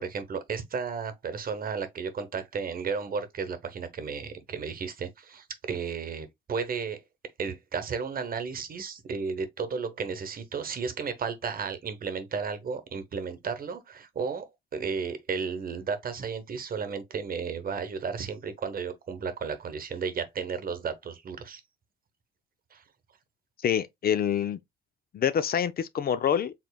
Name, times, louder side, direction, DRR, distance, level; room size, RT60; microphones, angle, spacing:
voice 1, 0.0-7.0 7.4-21.6 22.7-22.8, right 5 dB, 45° right, 1.0 m, -33 dB
voice 2, 23.6-24.6 25.1-26.5, left 8 dB, 50° left, 0.5 m, -26 dB
4.8 x 3.7 x 2.3 m
cardioid pair, 90°, 20 cm